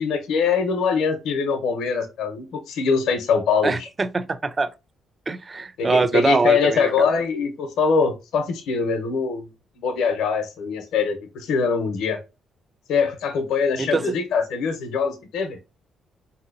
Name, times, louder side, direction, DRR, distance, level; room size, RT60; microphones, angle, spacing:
voice 1, 0.0-3.9 5.8-9.5 9.8-12.2 12.9-15.6, left 5 dB, 85° left, 0.7 m, -23 dB
voice 2, 3.6-4.7 5.3-7.1 13.8-14.0, right 3 dB, 30° right, 0.3 m, -23 dB
3.8 x 2.7 x 2.5 m
cardioid pair, 90°, 0 cm